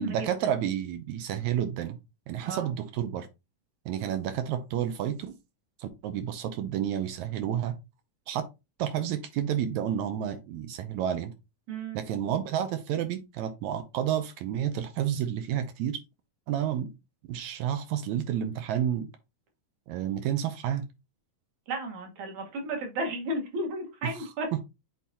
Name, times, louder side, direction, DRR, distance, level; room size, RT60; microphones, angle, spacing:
voice 1, 0.0-2.0 2.3-3.3 3.9-5.3 5.8-7.7 8.3-8.5 8.8-11.3 11.9-16.0 16.5-16.9 17.3-19.1 19.9-20.9, right 10 dB, 80° right, 1.8 m, -30 dB
voice 2, 11.7-12.0 21.7-24.5, right 1 dB, 60° right, 2.6 m, -33 dB
8.4 x 4.1 x 2.8 m
omnidirectional pair, 3.8 m